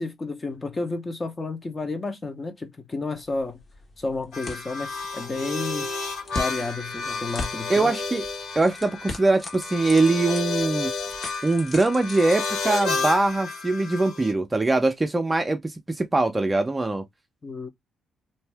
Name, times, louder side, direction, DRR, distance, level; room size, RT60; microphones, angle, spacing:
voice 1, 0.0-3.6 4.0-5.9 6.3-7.9 17.4-17.7, left 3 dB, 25° left, 0.9 m, -31 dB
sound 1, 3.1-13.4, left 2 dB, 45° left, 1.4 m, -41 dB
sound 2, 4.3-14.3, left 4 dB, 85° left, 1.5 m, -31 dB
voice 2, 7.7-8.2 8.6-10.9 11.4-15.6 16.0-17.0, right 2 dB, 20° right, 0.6 m, -22 dB
2.7 x 2.6 x 3.3 m
cardioid pair, 90°, 0 cm